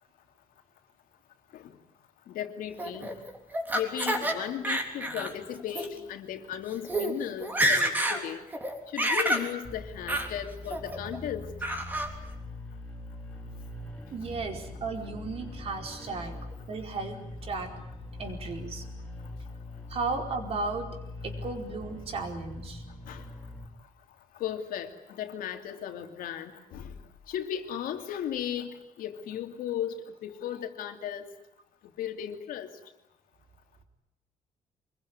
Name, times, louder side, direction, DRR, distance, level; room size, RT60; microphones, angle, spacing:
voice 1, 2.3-3.1 3.7-8.4 8.9-11.5 23.1-23.3 24.4-26.9 27.3-31.3 32.0-32.7, left 10 dB, 80° left, 6 dB, 2.9 m, -36 dB
Laughter, 2.8-4.3 4.6-5.3 5.7-5.9 6.5-6.6 6.8-7.1 7.4-8.2 8.5-9.5 10.1-10.3 10.7-11.2 11.6-12.1, right 1 dB, 10° right, 3.5 m, -28 dB
sound 1, 9.6-23.7, left 2 dB, 10° left, 4.5 m, -42 dB
voice 2, 14.1-16.4 16.7-17.7 18.2-18.8 19.9-20.9 21.2-22.8, right 4 dB, 45° right, 4 dB, 4.7 m, -35 dB
25.0 x 22.0 x 9.7 m, 0.87 s
cardioid pair, 165°, 14 cm